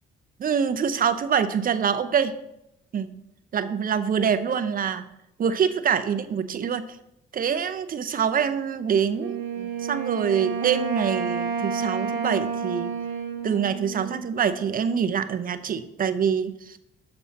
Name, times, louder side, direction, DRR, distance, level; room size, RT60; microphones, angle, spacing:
voice 1, 0.4-2.3 2.9-3.1 3.5-5.1 5.4-6.9 7.3-12.9 13.4-16.8, right 7 dB, 45° right, 11 dB, 0.6 m, -25 dB
Wind instrument woodwind instrument, 9.2-14.6, right 5 dB, 75° right, 1.6 m, -30 dB
6.8 x 6.8 x 4.1 m, 0.84 s
cardioid pair, 90°, 20 cm